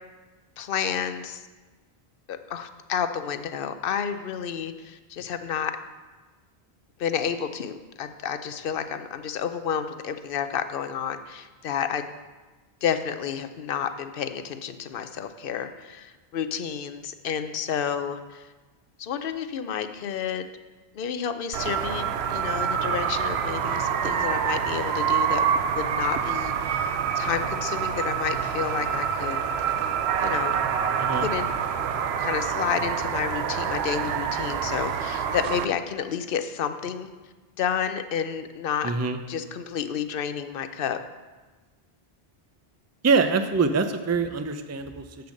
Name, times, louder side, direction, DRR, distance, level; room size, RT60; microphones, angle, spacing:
voice 1, 0.6-1.4 2.3-5.8 7.0-12.1 12.8-18.5 19.0-20.5 20.9-25.4 25.7-29.4 30.2-30.6 31.2-31.5 32.2-37.1 37.6-38.9 39.3-41.0, left 8 dB, 60° left, 10 dB, 0.8 m, -30 dB
sound 1, 21.5-35.7, right 7 dB, 80° right, 0.9 m, -26 dB
voice 2, 38.8-39.2 43.0-45.0, right 4 dB, 25° right, 8 dB, 0.4 m, -24 dB
8.0 x 6.9 x 6.4 m, 1.3 s
omnidirectional pair, 1.1 m